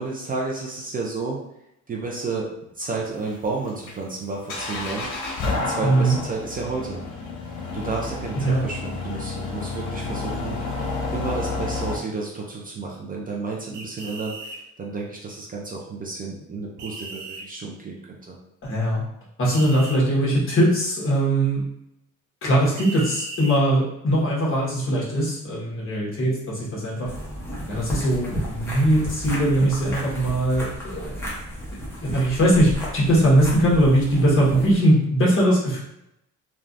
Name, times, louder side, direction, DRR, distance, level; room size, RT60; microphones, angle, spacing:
voice 1, 0.0-1.4 1.9-2.5 2.8-5.1 5.6-7.0 7.7-18.4, right 3 dB, 30° right, -2 dB, 0.5 m, -31 dB
sound 1, 2.8-12.0, left 3 dB, 85° left, 0.8 m, -30 dB
voice 2, 5.8-6.2 8.3-8.7 18.6-19.0 19.4-21.6 22.4-27.1 27.7-31.1 32.0-35.8, right 1 dB, 45° left, -5 dB, 1.3 m, -20 dB
sound 2, 13.7-14.6 16.8-17.4 19.5-20.0 22.8-23.6, right 2 dB, 70° right, 0.7 m, -37 dB
sound 3, 27.0-34.8, equal, 10° left, 0.9 m, -33 dB
3.2 x 2.4 x 2.6 m, 0.81 s
cardioid pair, 130°, 30 cm